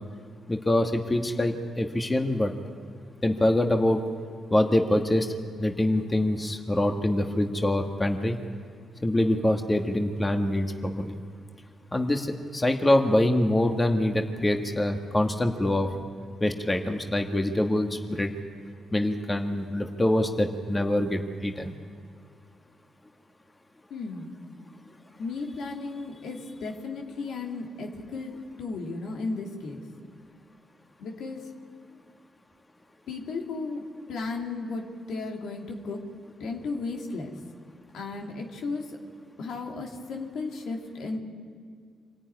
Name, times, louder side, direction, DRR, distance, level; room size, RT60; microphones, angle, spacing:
voice 1, 0.5-2.5 3.2-4.0 4.5-8.4 9.0-11.2 11.9-15.9 16.4-18.3 18.9-21.7, left 1 dB, 25° left, 4 dB, 2.0 m, -25 dB
voice 2, 23.9-24.4 25.2-28.3 28.6-29.8 31.0-31.4 33.1-33.8 34.1-36.0 36.4-37.3 37.9-38.8 39.4-41.2, left 3 dB, 75° left, 1 dB, 2.9 m, -34 dB
25.5 x 14.0 x 9.7 m, 2.1 s
supercardioid pair, 50°, 0 cm